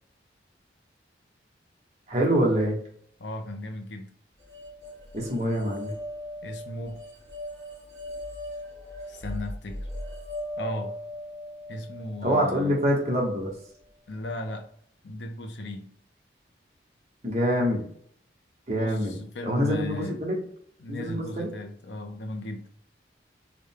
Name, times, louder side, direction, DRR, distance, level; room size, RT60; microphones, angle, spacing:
voice 1, 2.1-2.7 5.1-5.9 12.2-13.5 17.2-17.8 18.7-19.1 19.4-20.4 20.9-21.5, equal, 40° right, 1.1 m, -25 dB
voice 2, 3.2-4.1 6.4-7.0 9.1-9.9 10.6-11.0 11.7-12.8 14.1-14.7 15.0-15.9 18.7-20.2 20.8-22.7, left 1 dB, 80° left, 0.6 m, -36 dB
sound 1, 4.5-13.7, left 1 dB, 65° right, 1.8 m, -39 dB
4.9 x 2.2 x 3.5 m
head